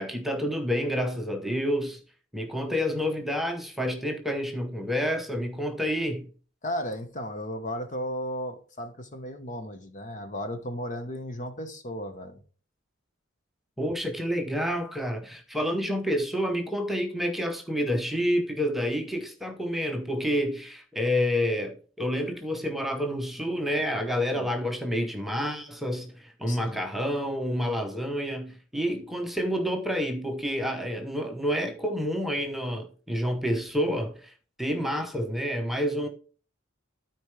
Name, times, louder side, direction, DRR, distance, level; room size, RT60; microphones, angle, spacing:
voice 1, 0.0-2.0 2.3-6.3 13.8-34.3 34.6-36.1, equal, ahead, 0.8 m, -29 dB
voice 2, 6.6-12.4 24.3-24.5 26.5-26.8, equal, 40° left, 1.1 m, -35 dB
13.0 x 4.5 x 3.2 m
head